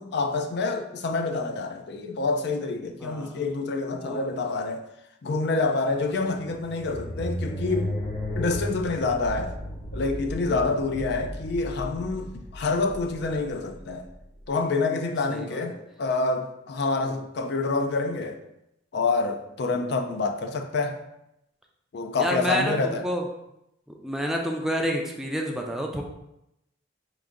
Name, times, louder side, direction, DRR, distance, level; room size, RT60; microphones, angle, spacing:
voice 1, 0.0-4.8 5.2-7.9 8.3-9.5 9.9-14.1 14.5-18.4 18.9-21.0 21.9-23.1, left 3 dB, 60° left, 6 dB, 0.4 m, -27 dB
voice 2, 3.0-3.4 3.9-4.2 10.5-10.8 15.3-15.6 19.7-19.8 22.2-23.2 24.0-26.0, equal, 5° right, 0 dB, 0.4 m, -29 dB
sound 1, 6.2-14.5, left 1 dB, 35° left, 0.8 m, -35 dB
4.7 x 2.6 x 3.7 m, 0.84 s
head